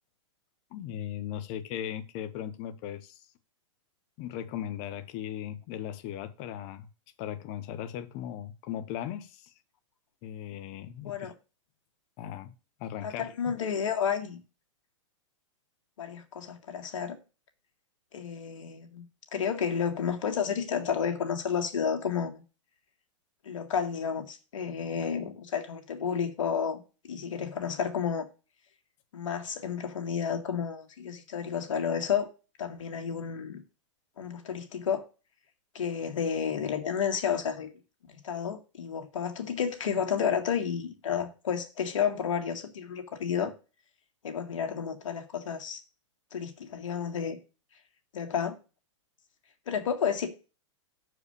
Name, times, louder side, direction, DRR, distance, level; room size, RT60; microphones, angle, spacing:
voice 1, 0.7-3.3 4.2-6.9 7.2-9.5 10.2-11.3 12.2-12.5 12.8-13.5, left 10 dB, 40° left, 1.0 m, -38 dB
voice 2, 13.0-14.4 16.0-17.2 18.1-19.1 19.3-22.4 23.4-28.3 29.1-32.3 32.6-33.6 34.2-35.0 35.7-37.7 38.2-43.5 44.2-45.8 46.3-47.4 48.1-48.6 49.7-50.3, left 7 dB, 80° left, 1.9 m, -31 dB
6.7 x 4.9 x 6.8 m
hypercardioid pair, 135°, 16 cm